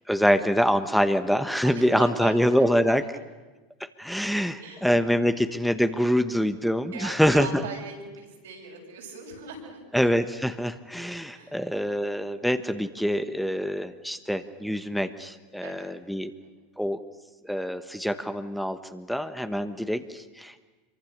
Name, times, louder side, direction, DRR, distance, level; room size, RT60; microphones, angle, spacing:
voice 1, 0.1-3.0 4.0-7.6 9.9-16.3 16.8-17.0 17.4-20.6, equal, ahead, 9 dB, 1.3 m, -25 dB
voice 2, 1.6-2.9 4.6-4.9 6.9-9.8 11.3-11.6 13.7-14.2 15.6-15.9 16.4-16.5, right 5 dB, 80° right, -1 dB, 6.9 m, -40 dB
26.0 x 23.5 x 6.7 m, 1.2 s
hypercardioid pair, 90°, 0 cm